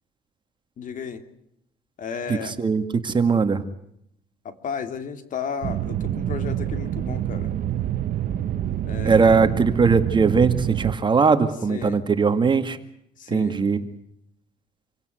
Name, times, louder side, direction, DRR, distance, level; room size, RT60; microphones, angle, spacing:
voice 1, 0.8-1.2 2.0-2.5 4.4-7.5 8.9-9.5 11.7-12.0 13.2-13.6, left 6 dB, 50° left, 9 dB, 2.8 m, -33 dB
voice 2, 2.3-3.6 9.0-12.8 13.3-13.9, right 5 dB, 30° right, 9 dB, 2.0 m, -20 dB
sound 1, 5.6-11.0, right 11 dB, 55° right, 1.1 m, -27 dB
27.0 x 16.5 x 9.4 m, 0.77 s
cardioid pair, 110°, 17 cm